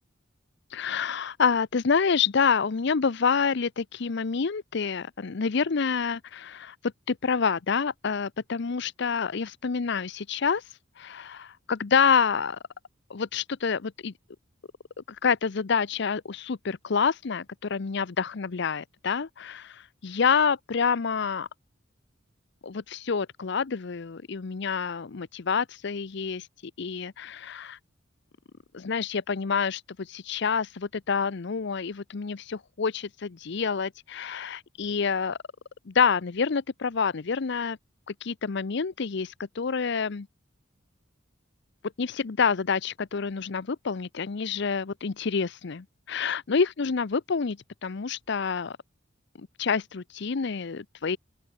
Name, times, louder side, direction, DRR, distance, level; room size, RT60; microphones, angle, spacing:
voice 1, 0.7-12.6 13.1-14.1 15.1-21.5 22.6-26.5 26.8-27.8 28.7-35.4 35.9-37.8 38.2-40.3 42.0-48.8 49.4-51.2, left 5 dB, 60° left, 0.6 m, -28 dB
open air
head